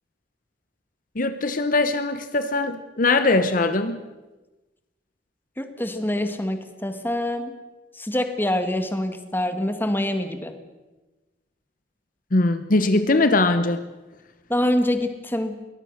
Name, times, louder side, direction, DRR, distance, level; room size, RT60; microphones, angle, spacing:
voice 1, 1.2-4.0 12.3-13.8, left 2 dB, 50° left, 10 dB, 1.0 m, -21 dB
voice 2, 5.6-7.5 7.9-10.6 14.5-15.6, left 1 dB, 10° left, 8 dB, 1.7 m, -25 dB
22.5 x 19.0 x 6.5 m, 1.2 s
head